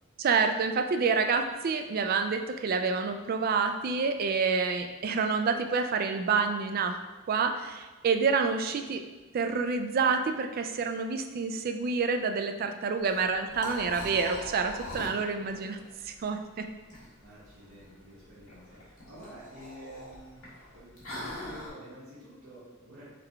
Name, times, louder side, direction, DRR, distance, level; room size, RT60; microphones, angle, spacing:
voice 1, 0.2-7.0 7.3-9.0 9.3-15.8 16.0-16.7, right 5 dB, 45° right, 6 dB, 0.3 m, -28 dB
Liquid, 13.0-21.7, left 1 dB, 75° left, 1.4 m, -43 dB
voice 2, 17.2-20.4 20.7-23.0, equal, 80° right, -14 dB, 1.4 m, -48 dB
3.6 x 3.4 x 3.4 m, 1.2 s
head